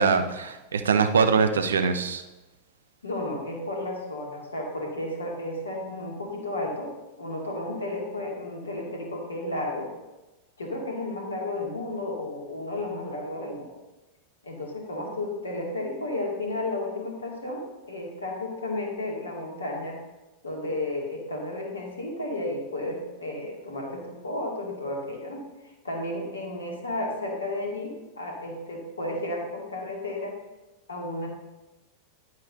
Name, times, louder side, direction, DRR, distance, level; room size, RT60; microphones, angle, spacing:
voice 1, 0.0-2.2, right 5 dB, 70° right, 9 dB, 0.6 m, -22 dB
voice 2, 3.0-6.9 7.2-9.9 10.6-13.7 14.4-20.0 20.4-30.4 30.9-31.3, left 1 dB, 75° left, -1 dB, 2.2 m, -33 dB
10.5 x 9.6 x 2.6 m, 1.0 s
figure-of-eight pair, 90°, 0 cm